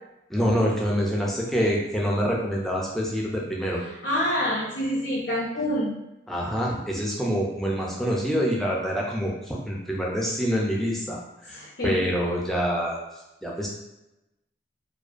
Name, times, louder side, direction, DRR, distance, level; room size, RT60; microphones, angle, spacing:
voice 1, 0.3-3.8 6.3-13.0 13.4-13.7, equal, ahead, -3 dB, 0.4 m, -26 dB
voice 2, 4.0-5.9 11.6-12.0, left 1 dB, 80° left, -6 dB, 0.5 m, -26 dB
2.5 x 2.1 x 2.4 m, 0.92 s
head